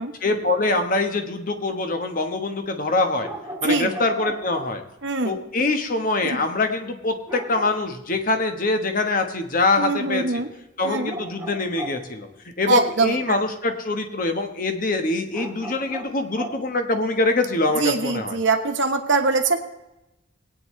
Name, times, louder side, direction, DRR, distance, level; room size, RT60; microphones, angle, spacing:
voice 1, 0.2-3.3 3.6-4.8 5.2-10.2 10.8-12.3 12.6-18.4, left 2 dB, 45° left, 5 dB, 1.3 m, -24 dB
sound 1, 3.2-4.8 7.3-8.1 10.8-12.3 15.3-16.7, right 1 dB, 10° right, 1.6 m, -36 dB
voice 2, 3.6-4.0 5.0-5.4 6.2-6.5 9.8-10.5 10.8-11.1 12.7-13.4 17.7-19.6, right 3 dB, 70° right, 5 dB, 1.3 m, -23 dB
19.5 x 9.4 x 3.2 m, 0.92 s
head